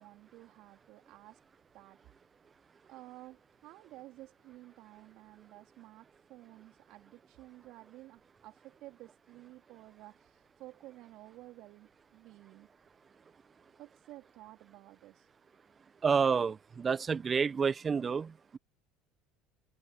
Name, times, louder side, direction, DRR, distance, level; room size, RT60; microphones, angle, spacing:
voice 1, 0.0-1.4 1.7-2.0 2.9-12.7 13.8-15.3, right 17 dB, 65° right, 3.7 m, -53 dB
voice 2, 16.0-18.6, right 6 dB, 30° right, 1.1 m, -29 dB
open air
hypercardioid pair, 75°, 0 cm